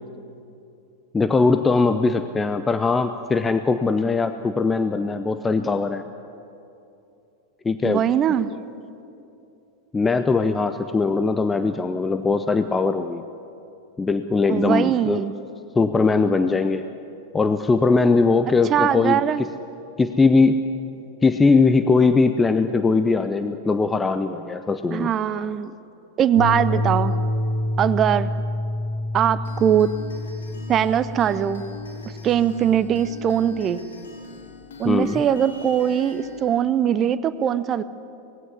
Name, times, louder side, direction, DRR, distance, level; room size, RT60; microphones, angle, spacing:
voice 1, 1.1-6.0 7.6-8.0 9.9-13.2 14.0-15.2 15.8-16.8 17.3-19.2 20.0-20.6 21.2-25.1 34.8-35.2, left 4 dB, 15° left, 10 dB, 0.7 m, -20 dB
voice 2, 7.8-8.5 14.5-15.3 18.7-19.4 24.9-25.7 26.2-27.2 27.8-28.3 29.1-29.9 30.7-31.6 32.2-33.8 34.8-37.8, right 9 dB, 30° right, 15 dB, 0.8 m, -21 dB
sound 1, 26.4-33.4, left 1 dB, 45° left, 2.0 m, -28 dB
sound 2, 29.4-36.5, left 4 dB, 65° left, 3.0 m, -42 dB
19.5 x 16.5 x 9.8 m, 2.7 s
figure-of-eight pair, 90°, 0 cm